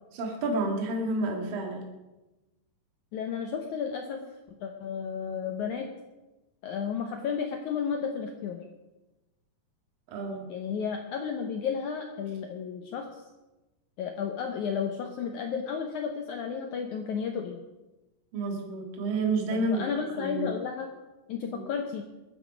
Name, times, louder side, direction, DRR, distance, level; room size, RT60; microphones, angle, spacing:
voice 1, 0.1-1.9 10.1-10.5 18.3-20.4 21.5-21.6, right 2 dB, 60° right, 1 dB, 3.6 m, -30 dB
voice 2, 3.1-4.2 4.6-5.9 6.6-8.6 10.5-13.3 14.0-17.6 19.5-20.9 21.3-22.0, left 6 dB, 85° left, 4 dB, 1.7 m, -33 dB
22.0 x 8.6 x 5.1 m, 1.1 s
omnidirectional pair, 4.8 m